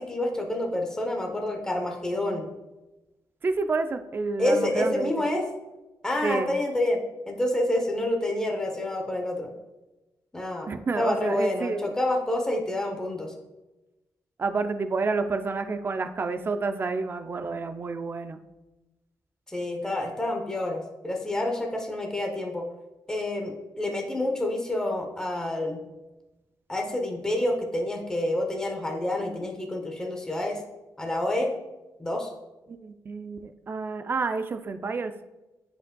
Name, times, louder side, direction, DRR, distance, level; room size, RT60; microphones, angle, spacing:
voice 1, 0.0-2.5 4.4-5.4 6.0-7.0 7.3-9.5 10.3-13.3 19.5-22.6 23.1-25.8 26.7-30.6 31.0-31.5 32.0-32.3, left 1 dB, 10° left, 1 dB, 0.8 m, -28 dB
voice 2, 3.4-5.1 6.2-6.5 10.7-11.9 14.4-18.4 32.7-35.1, right 4 dB, 30° right, 9 dB, 0.4 m, -29 dB
9.7 x 5.1 x 2.3 m, 1.0 s
wide cardioid pair, 145°, 7 cm